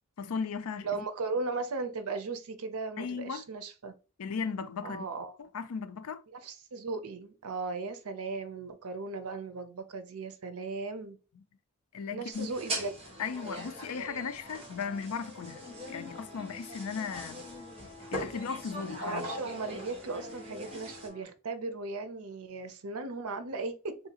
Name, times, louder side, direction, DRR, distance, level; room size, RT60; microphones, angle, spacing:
voice 1, 0.2-0.9 3.0-3.4 4.2-5.1 5.5-6.2 11.9-12.5 13.2-17.4 18.1-19.3, left 5 dB, 80° left, 0.4 m, -36 dB
voice 2, 0.8-3.9 4.8-5.3 6.3-11.2 12.1-12.9 19.0-23.9, right 3 dB, 80° right, 0.6 m, -37 dB
sound 1, 12.3-21.1, equal, 25° right, 1.2 m, -41 dB
sound 2, 15.4-21.2, left 2 dB, 45° left, 1.5 m, -51 dB
3.7 x 2.7 x 2.8 m
head